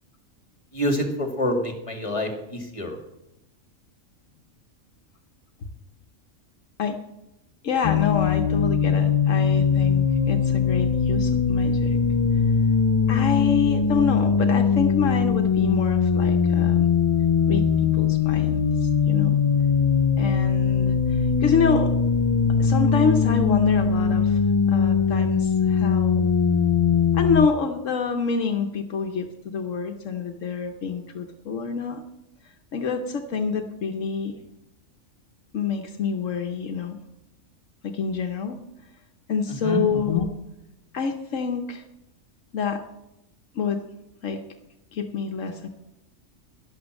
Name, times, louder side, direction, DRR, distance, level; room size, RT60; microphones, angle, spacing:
voice 1, 0.7-3.0 39.6-39.8, equal, 25° left, 3 dB, 2.3 m, -27 dB
voice 2, 7.6-12.0 13.1-16.9 17.5-17.6 17.9-18.6 19.1-19.4 20.2-20.9 21.4-21.9 22.6-24.4 24.7-26.3 27.1-32.0 32.7-34.4 35.5-37.0 37.8-38.6 39.3-40.3 40.9-41.8 42.5-42.8 43.5-43.8 44.2-44.4 44.9-45.7, left 5 dB, 75° left, 5 dB, 1.3 m, -27 dB
sound 1, 7.8-27.5, left 6 dB, 50° left, 0.3 m, -21 dB
12.0 x 10.5 x 6.4 m, 0.89 s
omnidirectional pair, 1.3 m